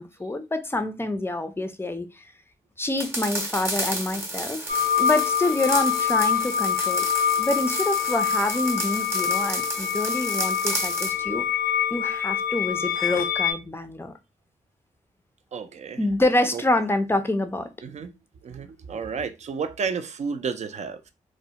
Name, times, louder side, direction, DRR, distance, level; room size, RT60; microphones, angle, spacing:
voice 1, 0.0-2.2 2.8-4.7 5.0-7.1 7.4-11.4 11.9-14.1 16.0-17.7, left 2 dB, 15° left, 0.4 m, -27 dB
sound 1, 3.0-11.2, right 1 dB, 15° right, 0.7 m, -32 dB
sound 2, 4.7-13.5, left 9 dB, 85° left, 0.5 m, -25 dB
voice 2, 15.5-16.0 16.5-16.6 17.8-18.1 18.4-21.1, right 5 dB, 50° right, 0.4 m, -31 dB
2.3 x 2.1 x 2.7 m
supercardioid pair, 50°, 15 cm